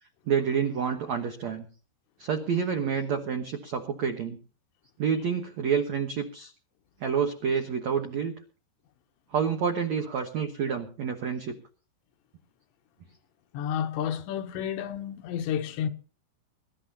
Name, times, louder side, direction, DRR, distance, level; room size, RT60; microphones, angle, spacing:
voice 1, 0.3-1.6 2.2-4.4 5.0-6.5 7.0-8.3 9.3-11.5, right 7 dB, 85° right, 1.5 m, -28 dB
voice 2, 13.5-15.9, left 9 dB, 80° left, 3.1 m, -31 dB
23.5 x 12.5 x 2.9 m
omnidirectional pair, 5.2 m